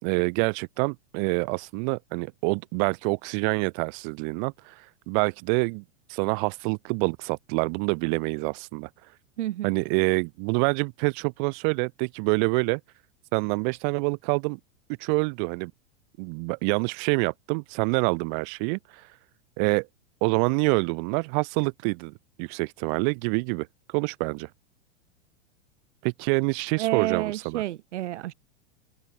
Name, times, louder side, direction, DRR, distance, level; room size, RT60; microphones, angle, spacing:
voice 1, 0.0-4.7 5.1-5.8 6.1-8.9 9.6-12.8 13.3-14.6 15.0-15.7 16.2-19.0 19.6-19.9 20.2-23.7 23.9-24.5 26.0-27.6, right 38 dB, 40° right, 2.5 m, -26 dB
voice 2, 9.4-9.7 26.8-28.3, right 14 dB, 70° right, 2.4 m, -29 dB
supercardioid pair, 155°, 35 cm